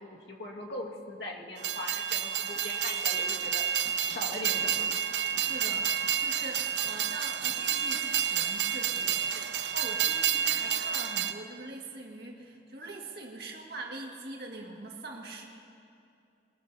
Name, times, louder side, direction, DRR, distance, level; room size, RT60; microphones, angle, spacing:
voice 1, 0.0-3.7 4.0-4.9, left 2 dB, 70° left, -1 dB, 1.8 m, -40 dB
Train, 1.6-11.3, right 9 dB, 85° right, 0.7 m, -30 dB
voice 2, 5.4-15.5, right 2 dB, 60° right, 0 dB, 1.9 m, -43 dB
22.0 x 21.0 x 2.7 m, 2.5 s
head